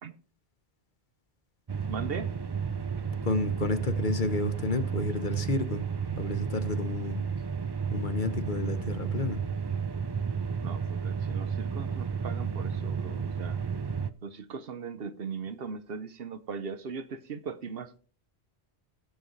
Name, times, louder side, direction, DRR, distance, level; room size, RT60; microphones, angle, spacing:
sound 1, 1.7-14.1, right 6 dB, 35° right, 0.4 m, -32 dB
voice 1, 1.9-2.3 10.5-13.6 14.2-18.0, right 5 dB, 60° right, 1.0 m, -39 dB
voice 2, 3.2-5.8 6.2-7.2 7.9-9.4, left 3 dB, 50° left, 1.1 m, -31 dB
17.0 x 7.8 x 3.2 m
omnidirectional pair, 1.1 m